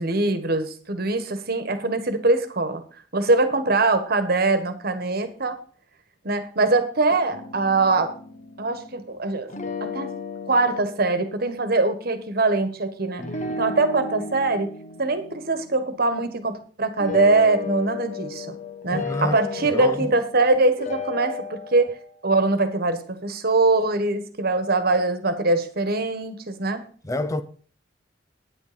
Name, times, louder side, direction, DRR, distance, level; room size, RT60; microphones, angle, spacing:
voice 1, 0.0-2.8 3.1-5.6 6.2-8.1 8.6-9.5 9.8-10.1 10.5-13.2 13.6-14.7 15.0-18.5 18.8-21.9 22.2-26.8, right 3 dB, 55° right, 1.4 m, -22 dB
sound 1, 7.3-9.1 9.5-12.0 13.2-16.5 17.0-20.5 20.8-22.1, left 4 dB, 40° left, 1.3 m, -35 dB
voice 2, 18.9-20.1 27.0-27.4, left 1 dB, 15° left, 0.6 m, -28 dB
9.6 x 9.5 x 5.1 m
head